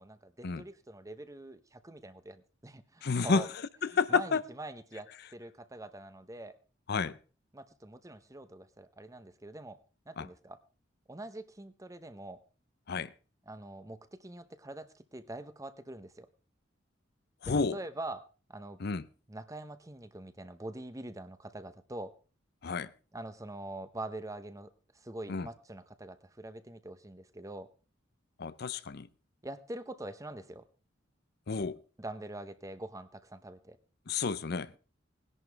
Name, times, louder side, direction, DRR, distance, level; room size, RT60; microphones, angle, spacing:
voice 1, 0.0-3.5 4.1-6.6 7.5-9.8 10.1-10.6 11.1-12.4 13.5-16.3 17.4-18.2 18.5-18.8 19.3-22.1 23.1-24.7 25.0-27.7 29.4-30.7 32.0-33.8, right 2 dB, 15° right, 0.8 m, -44 dB
voice 2, 3.0-3.5 3.8-4.4 6.9-7.2 10.2-10.3 12.9-13.1 17.4-17.8 18.8-19.0 22.6-22.9 25.3-25.5 28.4-29.1 31.5-31.8 34.1-34.8, left 4 dB, 55° left, 0.6 m, -30 dB
18.5 x 11.0 x 3.4 m
head